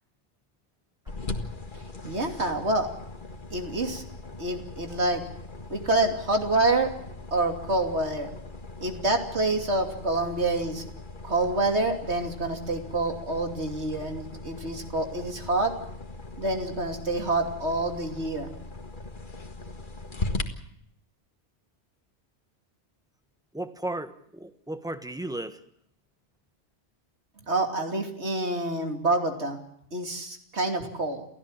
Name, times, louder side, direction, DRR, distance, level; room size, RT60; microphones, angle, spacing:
sound 1, 1.1-20.4, left 2 dB, 45° left, 1.9 m, -39 dB
voice 1, 2.0-2.9 3.5-4.0 4.4-5.2 5.7-6.9 7.3-8.3 8.8-10.8 11.2-15.7 16.4-18.5 27.5-29.6 29.9-31.3, right 2 dB, 75° right, 3 dB, 3.1 m, -27 dB
voice 2, 23.5-25.6, right 1 dB, 5° right, 9 dB, 1.2 m, -35 dB
29.0 x 15.5 x 7.3 m, 0.71 s
omnidirectional pair, 1.1 m